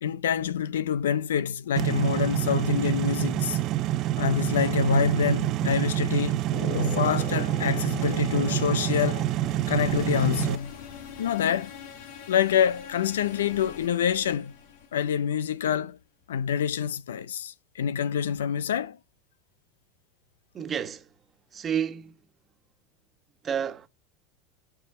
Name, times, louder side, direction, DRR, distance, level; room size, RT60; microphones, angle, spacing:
voice 1, 0.0-3.6 4.2-6.4 6.7-9.3 9.7-10.7 11.2-11.7 12.3-14.5 14.9-16.0 16.3-19.0, left 8 dB, 90° left, 0.5 m, -26 dB
sound 1, 1.8-10.6, right 14 dB, 50° right, 0.6 m, -27 dB
sound 2, 6.5-10.5, left 7 dB, 50° left, 2.2 m, -41 dB
sound 3, 7.9-15.8, left 8 dB, 70° left, 1.8 m, -45 dB
voice 2, 20.5-21.1 21.5-22.2 23.4-23.9, right 8 dB, 30° right, 1.4 m, -30 dB
13.0 x 4.9 x 3.7 m
hypercardioid pair, 100°, 0 cm